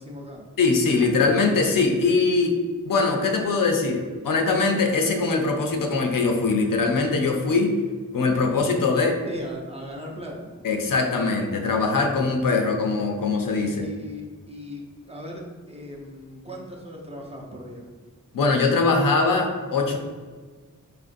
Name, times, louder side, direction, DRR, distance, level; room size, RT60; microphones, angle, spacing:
voice 1, 0.0-0.4 9.2-10.5 13.6-17.9, left 1 dB, 20° right, -2 dB, 0.6 m, -38 dB
voice 2, 0.6-2.6 2.9-7.7 8.1-9.2 10.6-13.8 18.3-20.0, left 4 dB, 85° left, 3 dB, 0.5 m, -22 dB
4.4 x 2.5 x 2.5 m, 1.4 s
wide cardioid pair, 65°, 32 cm